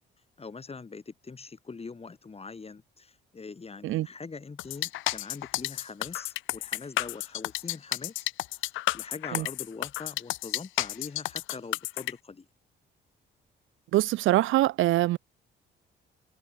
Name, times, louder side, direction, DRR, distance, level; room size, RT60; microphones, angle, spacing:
voice 1, 0.4-8.3 8.6-8.7 8.9-12.5, left 4 dB, 30° left, 6.7 m, -43 dB
sound 1, 4.6-12.1, left 17 dB, 80° left, 0.4 m, -31 dB
voice 2, 13.9-15.2, right 16 dB, 80° right, 0.6 m, -24 dB
cardioid pair, 90°, 20 cm